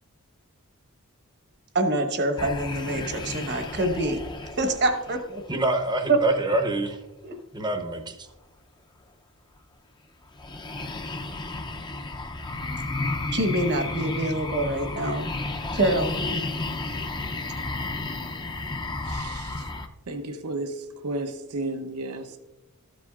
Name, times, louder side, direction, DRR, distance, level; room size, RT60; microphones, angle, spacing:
voice 1, 1.7-4.2 4.6-5.4 6.1-6.2 7.2-7.4 13.3-15.3 15.7-16.1, right 2 dB, 50° right, 1.1 m, -25 dB
sound 1, 2.4-6.1 10.4-19.9, left 2 dB, 20° left, 0.5 m, -32 dB
voice 2, 5.5-7.0 7.5-8.1, right 2 dB, 20° right, 0.7 m, -25 dB
voice 3, 19.0-19.7 20.1-22.4, right 2 dB, 85° right, 0.8 m, -33 dB
13.5 x 7.6 x 2.4 m
head